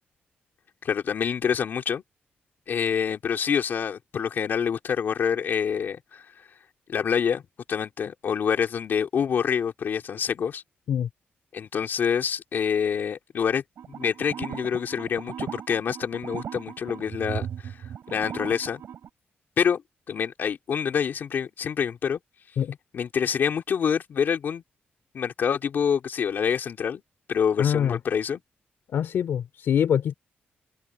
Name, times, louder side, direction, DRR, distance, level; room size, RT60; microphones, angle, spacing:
voice 1, 0.8-2.0 2.7-6.3 6.9-7.4 7.7-10.6 11.5-17.8 18.1-18.8 19.6-19.8 20.1-22.2 22.9-24.6 25.1-27.0 27.3-28.4, left 7 dB, 60° left, 3.7 m, -26 dB
sound 1, 13.8-19.1, right 8 dB, 70° right, 2.9 m, -37 dB
voice 2, 27.6-28.0 28.9-30.1, left 9 dB, 75° left, 2.9 m, -24 dB
wide cardioid pair, 145°, 4 cm